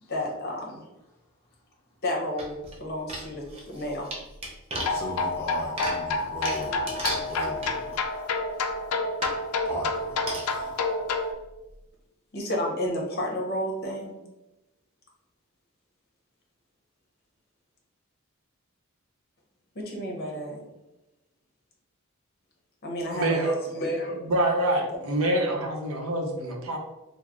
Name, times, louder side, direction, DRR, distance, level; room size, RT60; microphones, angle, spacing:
voice 1, 0.1-0.8 2.0-4.1 12.3-14.1 19.7-20.6 22.8-24.2 24.8-24.9, left 1 dB, 45° left, -1 dB, 0.7 m, -31 dB
sound 1, 2.4-2.8 3.1-8.1 8.6-8.7 9.2-9.4 10.3-10.7 11.1-11.2 11.4-11.5, right 1 dB, 25° right, 0.5 m, -35 dB
sound 2, 4.8-11.3, left 3 dB, 80° left, 0.4 m, -29 dB
voice 2, 4.9-8.0 9.6-10.7, equal, 10° left, -5 dB, 0.8 m, -38 dB
voice 3, 23.1-23.5 24.1-26.8, right 1 dB, 75° right, 2 dB, 0.6 m, -26 dB
3.0 x 2.0 x 3.5 m, 0.99 s
head